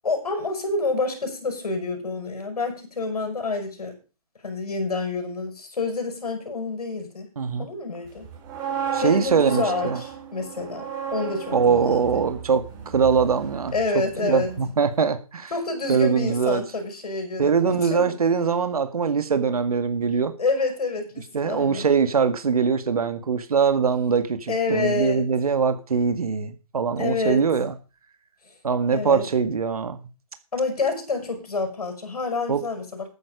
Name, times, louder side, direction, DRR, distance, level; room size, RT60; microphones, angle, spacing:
voice 1, 0.0-4.0 4.4-7.3 7.6-8.3 8.7-12.2 13.7-14.5 15.5-18.2 20.4-21.8 24.5-25.2 27.0-27.4 28.9-29.2 30.5-33.1, left 3 dB, 75° left, 6 dB, 6.5 m, -28 dB
voice 2, 7.4-7.7 8.9-10.0 11.5-15.5 15.9-16.6 17.4-20.3 21.3-27.7 28.6-30.0 32.5-32.6, right 6 dB, 75° right, 9 dB, 1.9 m, -22 dB
sound 1, 8.2-14.2 14.5-14.7, right 8 dB, 20° right, 4.0 m, -34 dB
13.0 x 9.9 x 5.1 m, 0.33 s
hypercardioid pair, 150°, 19 cm